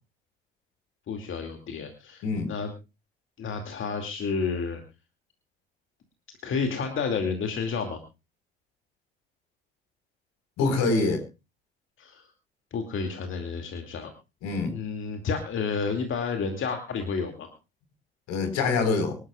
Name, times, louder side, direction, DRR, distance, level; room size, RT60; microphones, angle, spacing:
voice 1, 1.1-2.7 3.4-4.8 6.4-8.0 12.0-12.3 12.7-14.1 14.6-17.5, left 5 dB, 40° left, 5 dB, 2.4 m, -30 dB
voice 2, 10.6-11.2 14.4-14.7 18.3-19.2, left 3 dB, 60° left, 8 dB, 4.5 m, -25 dB
25.5 x 12.5 x 2.4 m, 0.29 s
figure-of-eight pair, 55°, 30 cm